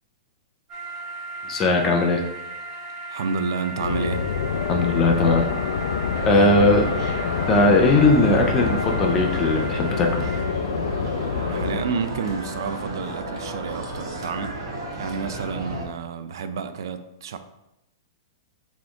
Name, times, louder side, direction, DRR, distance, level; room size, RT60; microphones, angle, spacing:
sound 1, 0.7-10.4, right 3 dB, 20° right, 0.8 m, -36 dB
voice 1, 1.5-2.2 4.7-5.5 6.2-6.9 7.5-10.2, left 2 dB, 15° left, 0.3 m, -19 dB
voice 2, 3.1-4.2 11.5-17.4, right 5 dB, 65° right, 0.4 m, -30 dB
sound 2, 3.8-11.8, left 6 dB, 90° left, 0.4 m, -27 dB
sound 3, 6.1-15.9, right 1 dB, 85° right, 1.2 m, -33 dB
4.2 x 3.0 x 3.4 m
supercardioid pair, 170°, 2 cm